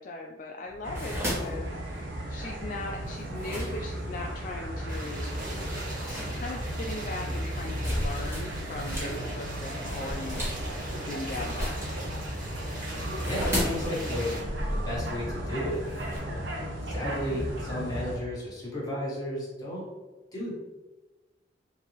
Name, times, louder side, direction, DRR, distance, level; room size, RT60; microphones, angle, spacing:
voice 1, 0.0-5.4 6.1-10.4 11.0-12.1 16.3-17.1, left 2 dB, 45° left, 0 dB, 0.3 m, -39 dB
sound 1, 0.7-4.3 4.8-5.0 5.4-9.2 9.4-16.2, equal, 15° right, 1.3 m, -35 dB
sound 2, 0.8-18.2, right 1 dB, 80° right, 0.7 m, -35 dB
sound 3, 4.9-14.4, right 1 dB, 50° right, 1.4 m, -40 dB
voice 2, 13.2-14.4 14.7-19.9 20.3-20.5, left 1 dB, 20° left, -5 dB, 1.2 m, -34 dB
3.8 x 2.6 x 3.1 m, 1.1 s
head